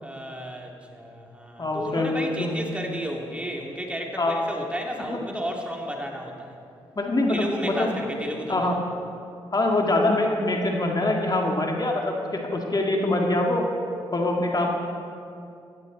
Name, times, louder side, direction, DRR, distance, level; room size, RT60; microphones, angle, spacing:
voice 1, 0.0-6.5 7.3-8.7, equal, 10° right, 0 dB, 2.7 m, -33 dB
voice 2, 1.6-2.6 4.2-4.3 5.1-5.2 7.0-7.9 8.5-8.8 9.5-13.6 14.1-14.7, left 2 dB, 35° left, 0 dB, 2.0 m, -24 dB
15.0 x 13.5 x 4.1 m, 2.5 s
hypercardioid pair, 40°, 12 cm